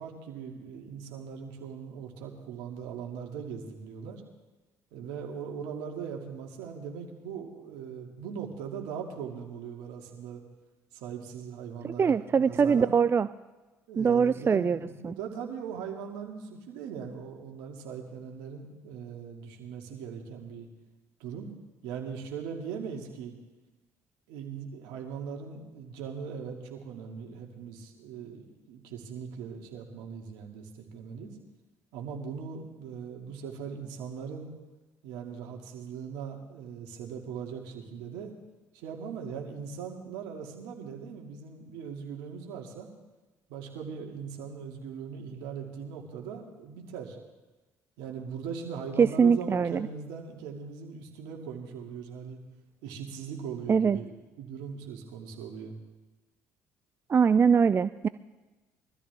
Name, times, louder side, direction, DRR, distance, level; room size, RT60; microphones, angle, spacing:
voice 1, 0.0-4.2 4.9-10.4 10.9-12.9 13.9-20.7 21.2-21.5 21.8-23.4 24.3-31.3 31.9-34.5 35.0-38.3 38.7-42.9 43.5-47.2 48.0-52.4 52.8-55.7, right 6 dB, 75° right, 2 dB, 2.3 m, -40 dB
voice 2, 12.0-13.3 14.0-14.8 15.0-15.1 49.0-49.9 53.7-54.0 57.1-58.1, right 6 dB, 30° right, 14 dB, 0.4 m, -22 dB
22.5 x 13.5 x 3.5 m, 1.2 s
hypercardioid pair, 60°, 7 cm